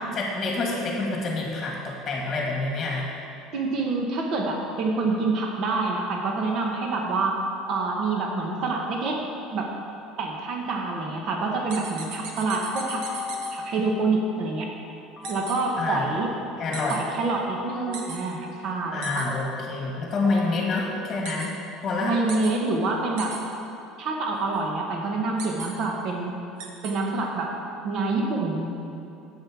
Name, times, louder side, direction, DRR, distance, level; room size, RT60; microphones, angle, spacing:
voice 1, 0.1-3.1 15.8-16.1 16.6-17.0 18.9-22.2, left 3 dB, 25° left, -1 dB, 1.5 m, -27 dB
voice 2, 3.5-7.3 7.7-9.2 9.5-9.7 10.2-13.1 13.5-14.7 15.3-16.3 16.9-19.2 22.0-23.4 24.0-26.4 26.8-27.5 27.8-28.7, right 3 dB, 50° right, 0 dB, 1.3 m, -27 dB
sound 1, 11.7-13.5 15.2-15.6 16.7-17.0 17.9-18.2 19.0-19.3 21.2-21.5 22.3-22.5 23.2-23.4 25.4-25.7 26.6-26.9, right 5 dB, 70° right, 1.4 m, -36 dB
sound 2, 12.7-14.5 15.2-17.0 17.7-21.9, left 4 dB, 10° left, 1.9 m, -38 dB
10.5 x 7.8 x 4.8 m, 2.7 s
cardioid pair, 145°, 0 cm